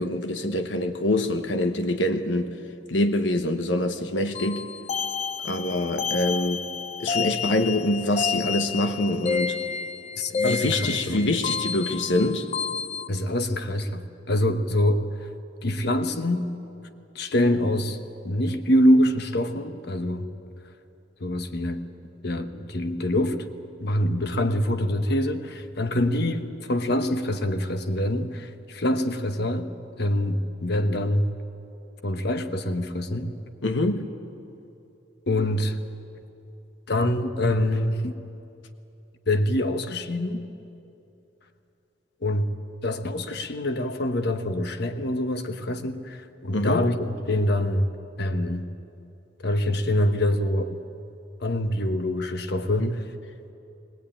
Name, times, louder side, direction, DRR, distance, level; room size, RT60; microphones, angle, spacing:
voice 1, 0.0-2.5 2.9-4.7 5.4-6.6 7.0-9.6 10.3-12.5 33.6-34.1 46.5-46.8 52.8-52.9, left 1 dB, 75° left, 7 dB, 1.2 m, -25 dB
sound 1, 4.3-13.1, left 6 dB, 35° left, 0.5 m, -30 dB
voice 2, 10.2-11.2 13.1-15.3 15.6-16.5 17.1-18.0 18.2-20.3 21.2-21.8 22.2-23.4 23.8-29.7 30.0-31.3 32.0-33.3 35.3-35.8 36.9-38.1 39.3-40.4 42.2-42.5 42.8-47.9 48.2-48.7 49.4-50.7 51.4-53.1, left 1 dB, 60° left, 8 dB, 1.1 m, -25 dB
21.0 x 20.5 x 8.9 m, 2.8 s
head